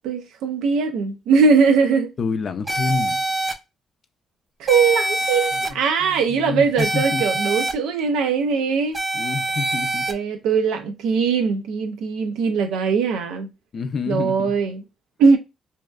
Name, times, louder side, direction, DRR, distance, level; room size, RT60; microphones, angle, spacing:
voice 1, 0.0-2.1 4.6-9.0 10.1-13.5 14.1-14.8 15.2-15.4, right 5 dB, 90° right, 0.5 m, -20 dB
voice 2, 2.2-3.2 5.5-5.7 6.0-7.2 9.1-10.1 13.7-14.6, left 5 dB, 50° left, 0.4 m, -28 dB
sound 1, 2.7-3.5 4.7-5.7 6.8-7.7 8.9-10.1, right 1 dB, 25° right, 0.4 m, -24 dB
2.7 x 2.3 x 2.2 m
cardioid pair, 90°, 0 cm